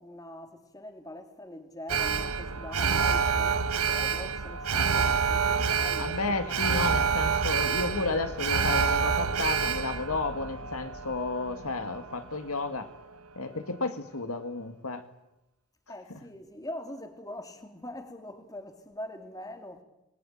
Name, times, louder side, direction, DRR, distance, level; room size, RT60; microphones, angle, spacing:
voice 1, 0.0-6.8 15.9-19.8, left 1 dB, 15° left, 2.5 m, -43 dB
Alarm, 1.9-12.2 12.5-12.6, right 6 dB, 85° right, 1.4 m, -27 dB
voice 2, 6.0-12.9 13.4-15.0, left 3 dB, 80° left, 2.1 m, -32 dB
28.0 x 20.5 x 9.0 m
head